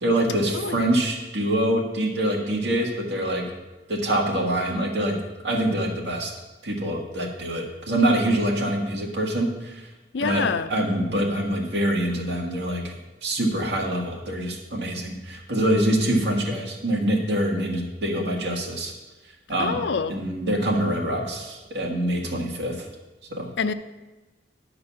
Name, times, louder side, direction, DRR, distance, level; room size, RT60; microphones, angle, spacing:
voice 1, 0.0-3.5 3.9-5.2 5.4-6.3 6.6-9.9 10.2-12.9 13.2-18.9 19.5-19.8 20.1-22.9 23.3-23.5, right 1 dB, 80° right, 0 dB, 1.7 m, -25 dB
voice 2, 10.1-10.7 19.6-20.2 23.6-23.7, left 5 dB, 90° left, 11 dB, 0.5 m, -26 dB
9.7 x 4.0 x 7.0 m, 1.1 s
head